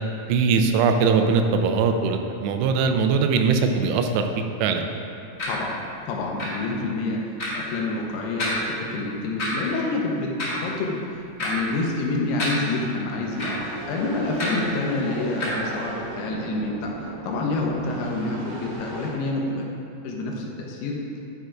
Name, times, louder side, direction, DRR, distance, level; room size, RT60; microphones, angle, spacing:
voice 1, 0.3-4.3 4.6-4.9, right 5 dB, 90° right, 5 dB, 2.8 m, -21 dB
voice 2, 5.4-5.8 6.1-19.7 20.0-21.0, left 2 dB, 80° left, -1 dB, 2.8 m, -28 dB
sound 1, 5.4-5.5 6.4-6.5 7.4-7.5 8.4-8.6 9.4-9.5 10.4-10.6 11.4-11.5 12.4-12.5 13.4-13.5 14.4-14.5 15.4-15.5, left 2 dB, 60° left, 0.8 m, -27 dB
sound 2, 13.3-19.1, right 2 dB, 60° right, 1.4 m, -37 dB
11.0 x 5.1 x 4.6 m, 2.7 s
omnidirectional pair, 4.8 m